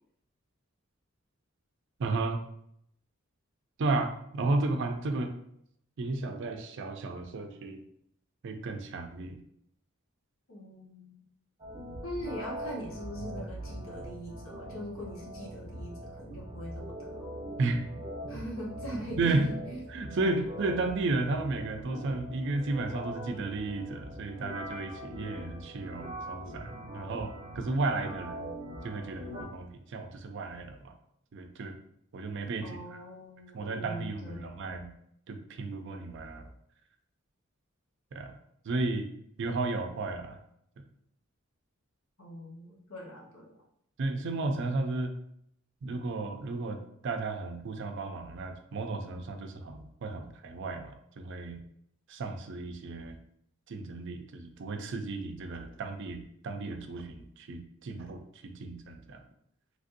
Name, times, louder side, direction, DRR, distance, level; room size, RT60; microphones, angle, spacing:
voice 1, 2.0-2.4 3.8-5.3 6.0-7.8 8.4-9.4 17.6-17.8 18.9-19.5 19.9-28.5 28.8-30.9 31.3-31.7 32.1-33.0 33.5-34.9 35.3-36.5 38.1-38.3 38.6-39.1 39.4-40.4 44.0-45.1 45.8-51.6 52.1-53.2 53.7-59.2, right 3 dB, 60° right, 5 dB, 0.4 m, -33 dB
voice 2, 10.5-11.2 12.0-17.3 18.3-19.8 32.6-34.8 42.2-43.6, equal, 75° left, -2 dB, 1.0 m, -42 dB
sound 1, 11.6-29.4, right 1 dB, 30° right, 0.7 m, -42 dB
3.3 x 2.6 x 2.5 m, 0.72 s
head